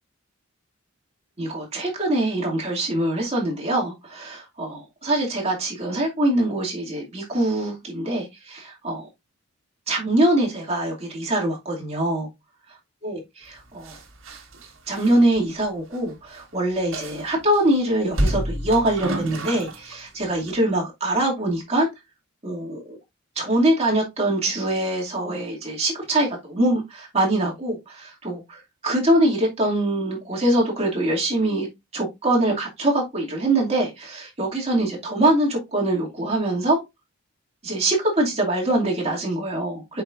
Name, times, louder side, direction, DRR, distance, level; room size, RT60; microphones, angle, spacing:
voice 1, 1.4-9.1 9.9-12.3 13.0-14.0 14.9-21.9 22.4-23.0 23.4-36.8 37.6-40.0, right 1 dB, 30° right, 2.5 m, -23 dB
sound 1, 13.8-16.1 16.4-16.5 16.9-17.6 18.1-19.9 20.3-20.5, right 1 dB, 65° right, 1.7 m, -29 dB
7.6 x 5.4 x 2.5 m
head